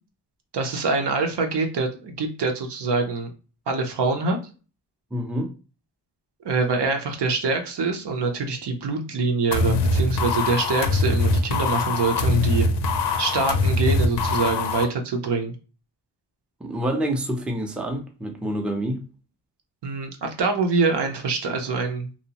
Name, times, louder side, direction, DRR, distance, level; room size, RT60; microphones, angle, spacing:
voice 1, 0.5-3.3 3.7-4.4 6.4-12.7 13.2-15.5 19.8-22.3, right 4 dB, 75° right, 0.7 m, -25 dB
voice 2, 5.1-5.5 16.6-19.0, right 1 dB, 5° right, 0.4 m, -27 dB
sound 1, 9.5-14.8, left 3 dB, 80° left, 0.5 m, -22 dB
2.7 x 2.0 x 2.8 m
cardioid pair, 85°, 41 cm